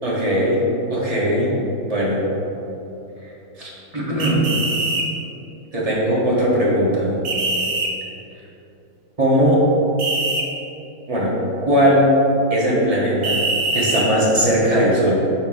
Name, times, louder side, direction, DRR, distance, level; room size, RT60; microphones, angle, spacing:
voice 1, 0.0-0.6 0.9-1.5 1.9-2.2 3.6-4.5 5.7-7.1 9.2-9.6 11.1-11.3 11.6-12.1 12.5-13.4 13.7-15.2, equal, 20° right, -6 dB, 1.5 m, -19 dB
sound 1, 4.2-5.0 7.2-7.9 10.0-10.4 13.2-14.1, right 2 dB, 55° right, 1.4 m, -22 dB
7.1 x 3.8 x 6.5 m, 2.9 s
omnidirectional pair, 2.1 m